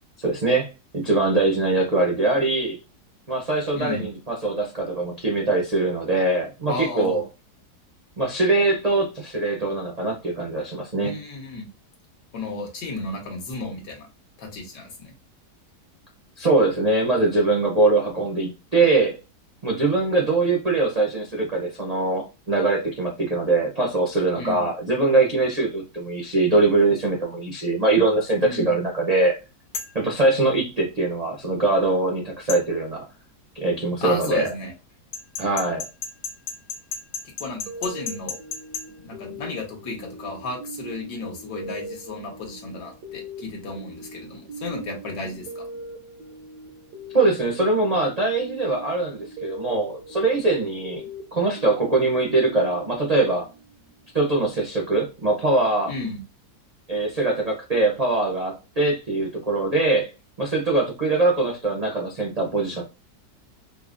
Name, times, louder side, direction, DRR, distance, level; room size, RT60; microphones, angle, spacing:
voice 1, 0.2-2.8 3.3-7.2 8.2-11.2 16.4-19.2 19.6-29.4 29.9-33.0 33.5-34.5 35.4-35.9 47.1-51.0 51.3-53.5 54.1-55.9 56.9-60.1 60.4-62.8, right 2 dB, 55° right, -1 dB, 0.4 m, -22 dB
voice 2, 3.7-4.1 6.7-7.2 11.0-11.7 12.3-14.1 14.4-15.1 24.3-24.7 28.4-28.8 34.0-34.7 37.4-38.4 39.0-45.6 55.9-56.2, left 3 dB, 75° left, 1 dB, 1.6 m, -33 dB
sound 1, 29.7-30.0 32.5-32.6 35.1-38.9, left 5 dB, 55° left, 1.2 m, -32 dB
sound 2, 37.7-54.0, right 1 dB, 80° right, 1.2 m, -40 dB
5.2 x 2.1 x 2.5 m, 0.28 s
omnidirectional pair, 1.8 m